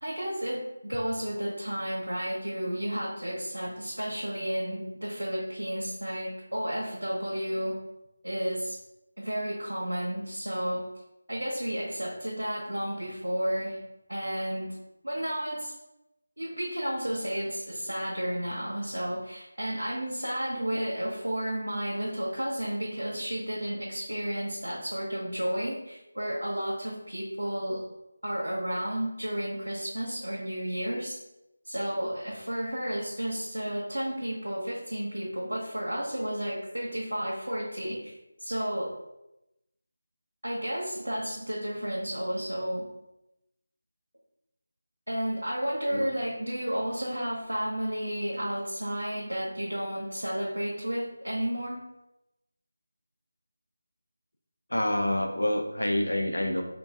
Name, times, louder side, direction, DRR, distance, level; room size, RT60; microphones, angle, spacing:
voice 1, 0.0-7.8 8.2-8.8 9.2-10.8 11.3-13.8 14.1-14.7 15.0-15.7 16.4-27.8 28.2-31.2 31.7-38.1 38.4-38.9 40.4-42.8 45.1-51.8, equal, 90° right, -6 dB, 1.0 m, -32 dB
voice 2, 54.7-56.6, left 1 dB, 90° left, 3 dB, 0.6 m, -27 dB
3.6 x 3.0 x 3.6 m, 0.92 s
figure-of-eight pair, 165°, 0 cm